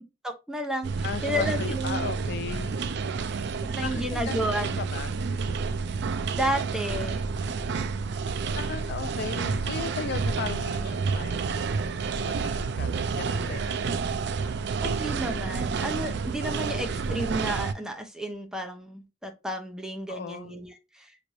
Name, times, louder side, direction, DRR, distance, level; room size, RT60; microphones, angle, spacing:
voice 1, 0.2-0.9 1.2-2.1 3.7-4.8 6.4-7.2 7.7-7.9 14.8-21.1, equal, 5° right, 0.8 m, -32 dB
sound 1, 0.8-17.7, right 5 dB, 60° right, 0.4 m, -29 dB
voice 2, 1.0-2.8 3.8-4.4 4.8-5.2 8.5-11.5 12.2-12.9 13.2-13.9 20.1-20.5, left 6 dB, 60° left, 0.4 m, -36 dB
5.8 x 3.2 x 2.6 m
head